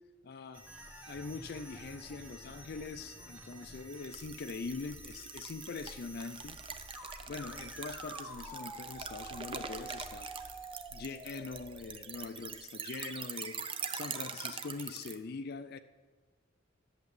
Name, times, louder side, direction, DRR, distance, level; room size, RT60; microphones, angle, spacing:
voice 1, 0.2-0.7 1.0-6.6 7.3-10.3 10.9-13.6 13.9-15.8, left 4 dB, 50° left, 0.4 m, -43 dB
sound 1, 0.5-12.7, right 2 dB, 10° right, 1.3 m, -49 dB
sound 2, 3.9-15.2, right 6 dB, 25° right, 0.6 m, -43 dB
11.0 x 6.9 x 8.8 m
head